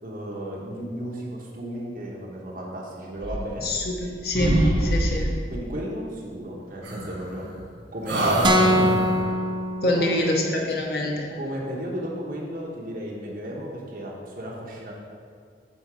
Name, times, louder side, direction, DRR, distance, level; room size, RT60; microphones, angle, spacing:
voice 1, 0.0-3.7 5.5-7.5 7.9-9.1 9.8-10.3 11.4-14.9, equal, 50° right, -3 dB, 1.1 m, -33 dB
sound 1, 3.2-4.1 4.3-5.5 6.8-7.7 8.0-9.3, right 1 dB, 85° right, 1.3 m, -25 dB
voice 2, 3.6-5.3 9.8-10.3 10.7-11.3, left 1 dB, 60° left, 0 dB, 0.9 m, -26 dB
sound 2, 8.4-10.5, equal, 25° right, 0.6 m, -23 dB
8.0 x 3.8 x 5.1 m, 2.2 s
head